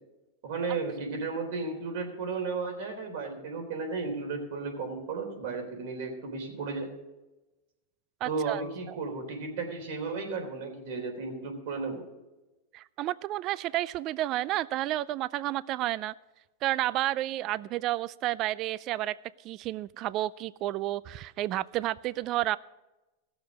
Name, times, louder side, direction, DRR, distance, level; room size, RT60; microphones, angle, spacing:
voice 1, 0.4-7.0 8.3-12.1, right 4 dB, 65° right, 4 dB, 3.5 m, -34 dB
voice 2, 8.2-8.6 8.9-9.0 12.7-16.1 16.6-19.2 19.4-22.6, right 15 dB, 40° right, 19 dB, 0.3 m, -31 dB
16.5 x 7.0 x 6.3 m, 1.1 s
hypercardioid pair, 125°, 0 cm